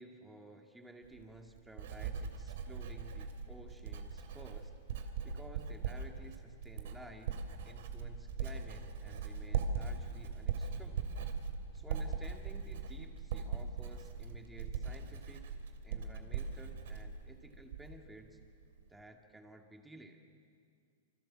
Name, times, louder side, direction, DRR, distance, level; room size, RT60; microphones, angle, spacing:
voice 1, 0.0-4.7 5.2-11.0 11.7-15.5 15.8-18.4 18.9-20.2, right 1 dB, 5° right, 4 dB, 2.3 m, -54 dB
Writing, 1.0-18.1 18.4-18.8, right 6 dB, 70° right, 3.0 m, -40 dB
27.5 x 25.0 x 7.6 m, 2.3 s
supercardioid pair, 150°, 0 cm